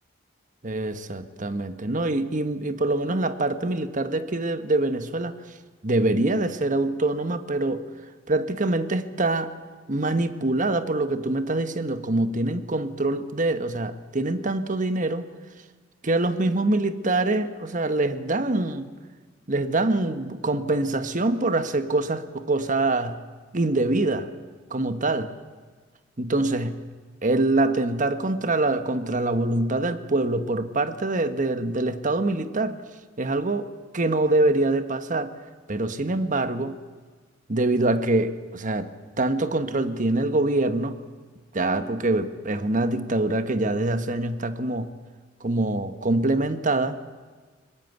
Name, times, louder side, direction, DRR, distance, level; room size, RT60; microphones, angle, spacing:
voice 1, 0.6-5.3 5.8-7.9 8.3-9.5 9.9-15.3 16.0-18.9 19.5-23.2 23.5-24.3 24.7-25.3 26.2-26.8 27.2-32.8 33.2-33.7 33.9-35.3 35.7-36.8 37.5-38.9 39.2-41.0 41.5-44.9 45.4-47.0, right 2 dB, 40° right, 10 dB, 1.3 m, -24 dB
22.0 x 20.0 x 9.4 m, 1.4 s
head